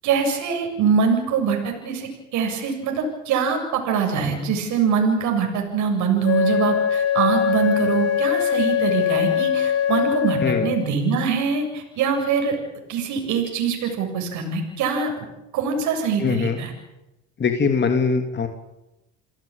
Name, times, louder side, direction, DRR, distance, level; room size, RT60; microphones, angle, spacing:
voice 1, 0.0-12.6 12.9-15.1 15.5-16.7, right 6 dB, 60° right, 3 dB, 7.7 m, -23 dB
Wind instrument woodwind instrument, 6.2-10.9, left 8 dB, 50° left, 3.0 m, -22 dB
voice 2, 16.2-16.6 17.4-18.5, left 5 dB, 35° left, 5 dB, 3.0 m, -21 dB
29.5 x 17.0 x 9.0 m, 0.95 s
hypercardioid pair, 75°, 32 cm